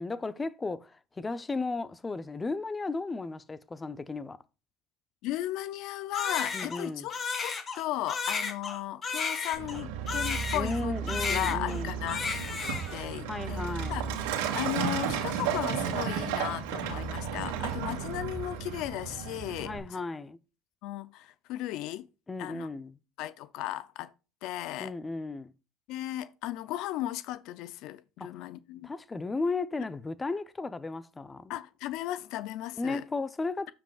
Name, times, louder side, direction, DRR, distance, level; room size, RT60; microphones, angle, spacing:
voice 1, 0.0-4.4 6.5-7.1 10.5-11.9 13.2-14.0 19.6-20.4 22.3-22.9 24.8-25.5 28.2-28.3 28.8-31.5 32.8-33.7, left 3 dB, 20° left, 0.6 m, -34 dB
voice 2, 5.2-7.1 7.4-10.9 11.3-12.6 12.9-13.6 13.9-14.2 14.5-19.7 20.8-22.1 22.4-22.7 23.2-24.1 24.4-24.9 25.9-28.9 31.5-33.0, left 14 dB, 70° left, 0.5 m, -36 dB
Crying sobbing, 6.1-10.8 11.1-11.8 12.1-13.0, left 5 dB, 40° left, 2.1 m, -33 dB
Truck, 9.5-19.8, right 7 dB, 85° right, 2.1 m, -33 dB
15.0 x 5.1 x 2.4 m
supercardioid pair, 85°, 0 cm